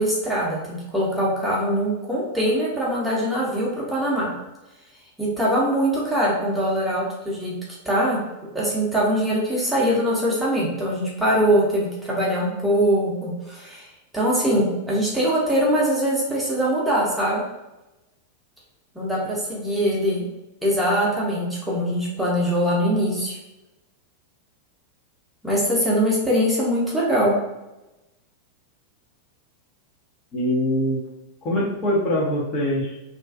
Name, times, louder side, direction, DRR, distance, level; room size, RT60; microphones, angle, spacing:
voice 1, 0.0-4.3 5.2-7.6 7.8-8.2 8.5-13.9 14.1-17.4 18.9-20.2 20.6-23.4 25.4-27.3, equal, 5° right, -6 dB, 0.8 m, -22 dB
voice 2, 30.3-31.0 31.4-33.0, left 1 dB, 35° left, -4 dB, 0.8 m, -23 dB
2.5 x 2.3 x 2.4 m, 1.0 s
figure-of-eight pair, 90°, 0 cm